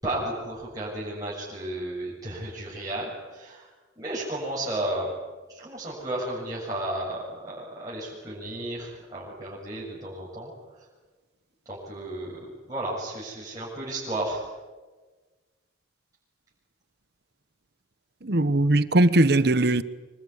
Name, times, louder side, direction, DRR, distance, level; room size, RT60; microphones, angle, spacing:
voice 1, 0.0-3.7 4.0-5.1 5.5-10.5 11.7-12.4 12.7-14.4, right 1 dB, 20° right, 7.2 m, -33 dB
voice 2, 18.2-19.8, right 1 dB, 55° right, 1.1 m, -20 dB
25.5 x 23.5 x 9.7 m
head